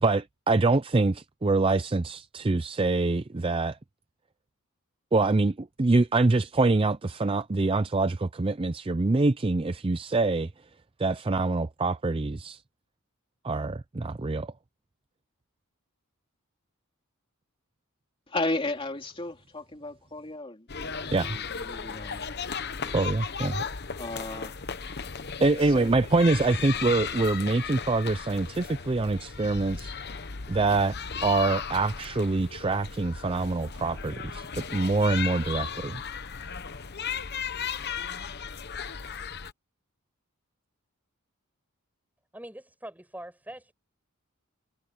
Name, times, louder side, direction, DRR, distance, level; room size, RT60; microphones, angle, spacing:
voice 1, 0.0-3.8 5.1-10.5 11.0-12.6 13.4-14.5 21.1-21.4 22.9-23.6 25.4-29.9 30.5-31.0 31.2-36.0, right 3 dB, 25° right, 0.5 m, -25 dB
voice 2, 18.3-22.2 22.8-23.0 23.9-24.5 25.6-26.0, left 2 dB, 25° left, 2.9 m, -34 dB
sound 1, 20.7-39.5, left 6 dB, 50° left, 1.1 m, -36 dB
voice 3, 42.3-43.7, right 1 dB, 10° right, 5.6 m, -43 dB
head